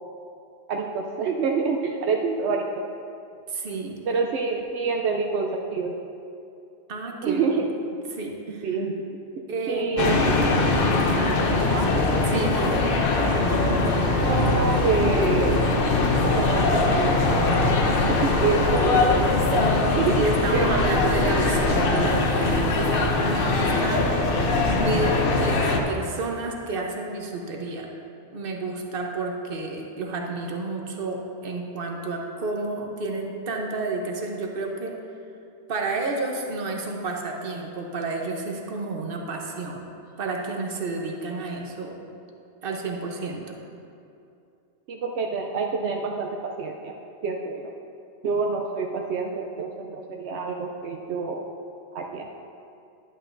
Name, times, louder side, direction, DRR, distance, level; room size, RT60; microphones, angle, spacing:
voice 1, 0.7-2.7 4.1-5.9 7.2-7.7 8.6-9.0 9.7-10.4 11.6-11.9 14.2-15.6 16.2-17.8 18.2-20.2 20.5-20.7 44.9-46.9 47.2-47.7 48.2-51.5 51.9-52.3, right 4 dB, 80° right, 1 dB, 0.9 m, -27 dB
voice 2, 3.5-3.9 6.9-7.4 8.1-8.7 9.5-9.9 12.3-12.8 18.7-18.8 20.1-24.1 24.7-27.9 28.3-34.9 35.7-39.9 40.2-42.0 42.6-43.6, right 3 dB, 55° right, 1 dB, 1.1 m, -30 dB
sound 1, 10.0-25.8, left 2 dB, 60° left, 0.9 m, -22 dB
11.0 x 8.9 x 2.6 m, 2.6 s
omnidirectional pair, 1.1 m